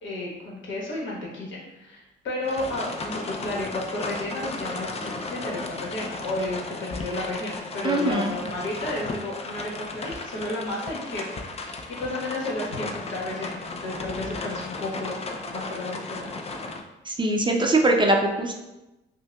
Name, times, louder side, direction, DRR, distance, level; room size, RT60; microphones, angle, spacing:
voice 1, 0.0-15.2 15.5-16.4, left 1 dB, 70° left, -4 dB, 1.2 m, -32 dB
Rain from inside a car - Sault, 2.4-16.8, left 3 dB, 30° left, 0.4 m, -35 dB
voice 2, 7.8-8.3 17.1-18.5, right 2 dB, 25° right, 2 dB, 0.5 m, -22 dB
5.3 x 2.2 x 2.3 m, 0.99 s
cardioid pair, 90°, 20 cm